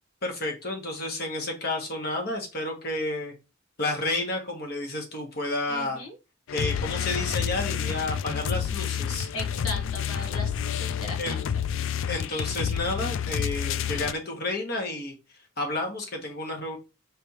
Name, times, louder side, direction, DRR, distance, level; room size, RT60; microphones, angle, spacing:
voice 1, 0.2-3.3 3.8-6.0 6.5-9.3 11.2-11.4 12.1-15.1 15.6-16.8, left 2 dB, 45° left, 1.3 m, -31 dB
voice 2, 5.7-6.1 9.3-11.3, left 2 dB, 90° left, 1.5 m, -38 dB
sound 1, 6.5-14.1, left 8 dB, 65° left, 0.3 m, -29 dB
5.3 x 3.3 x 2.9 m
head